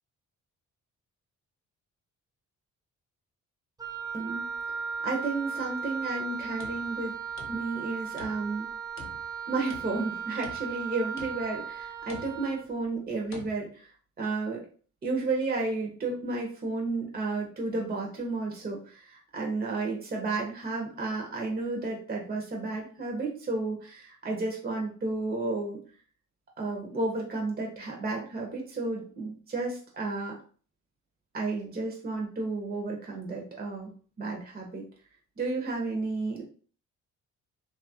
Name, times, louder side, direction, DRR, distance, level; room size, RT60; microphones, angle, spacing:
Wind instrument woodwind instrument, 3.8-12.7, right 6 dB, 15° right, 0.4 m, -36 dB
voice 1, 4.1-4.4 5.0-7.2 7.5-8.7 9.5-13.9 14.2-14.7 15.0-25.8 26.6-30.4 31.3-33.9 34.2-34.8 35.4-36.4, right 3 dB, 30° right, 0 dB, 0.8 m, -32 dB
sound 1, 6.4-7.9 8.2-8.6 9.0-10.1 10.4-10.9 11.2-11.6 12.1-12.6 13.3-13.5, left 4 dB, 45° left, 0.8 m, -47 dB
2.8 x 2.4 x 2.8 m, 0.41 s
cardioid pair, 90°, 30 cm